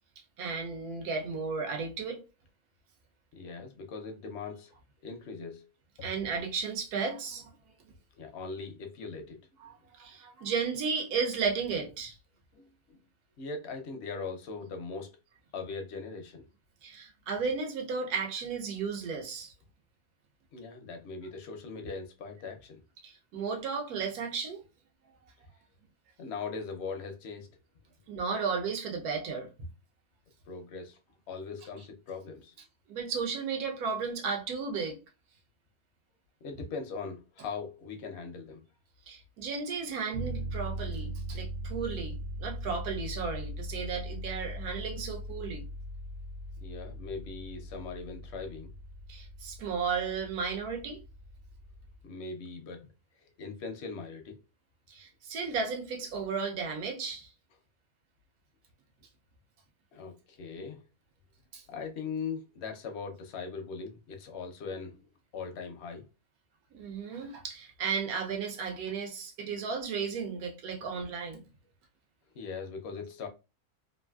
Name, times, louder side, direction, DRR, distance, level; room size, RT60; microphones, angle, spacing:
voice 1, 0.4-2.2 6.0-7.5 9.6-12.2 16.8-19.5 23.0-24.6 28.1-29.5 32.9-35.0 39.1-45.7 49.1-51.0 54.9-57.3 61.5-61.6 66.7-71.4, right 5 dB, 85° right, 1.2 m, -34 dB
voice 2, 3.3-4.7 5.0-5.7 8.1-9.4 12.5-13.0 13.4-15.1 15.5-16.5 20.5-22.8 26.2-27.6 30.5-31.0 31.3-32.5 36.4-38.6 46.6-48.7 52.0-52.9 53.4-54.4 59.9-60.9 61.7-65.1 65.3-66.0 72.3-73.3, left 4 dB, 65° left, 0.7 m, -40 dB
sound 1, 40.1-52.0, right 1 dB, 70° right, 0.6 m, -40 dB
3.1 x 2.5 x 2.2 m
omnidirectional pair, 1.6 m